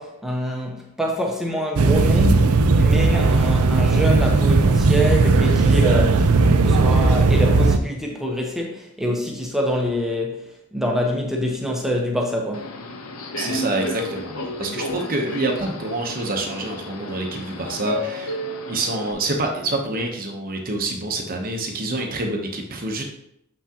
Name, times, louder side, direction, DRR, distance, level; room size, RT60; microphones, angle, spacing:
voice 1, 0.0-12.7, equal, ahead, -1 dB, 0.9 m, -25 dB
sound 1, 1.8-7.8, right 3 dB, 80° right, 0.5 m, -16 dB
Subway metro underground, 12.5-19.1, left 1 dB, 65° left, 0.8 m, -32 dB
voice 2, 13.4-18.4 18.7-23.0, right 2 dB, 40° right, 2 dB, 0.9 m, -27 dB
7.2 x 5.8 x 2.9 m, 0.76 s
head